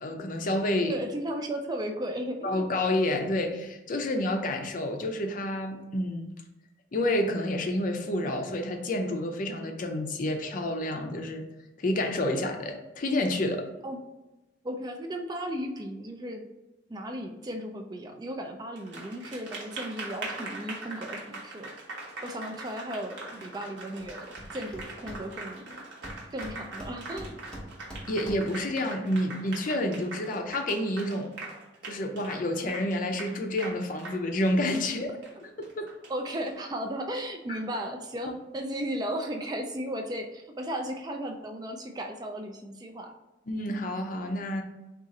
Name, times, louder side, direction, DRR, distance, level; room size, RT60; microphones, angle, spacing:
voice 1, 0.0-0.9 2.4-6.3 6.9-11.4 11.8-13.7 28.1-31.3 31.8-35.1 35.4-35.9 37.5-37.6 43.5-44.6, left 1 dB, 45° left, 3 dB, 0.5 m, -29 dB
voice 2, 0.9-2.8 13.8-14.0 14.6-16.5 16.9-21.7 22.2-25.8 26.3-27.4 36.1-43.1, right 1 dB, 20° right, 3 dB, 0.3 m, -35 dB
Applause, 18.8-36.5, right 2 dB, 75° right, 1.0 m, -42 dB
Hammer, 24.0-24.1 24.4-25.6 26.0-28.7, equal, 5° left, 0.8 m, -43 dB
3.7 x 2.4 x 4.0 m, 1.0 s
head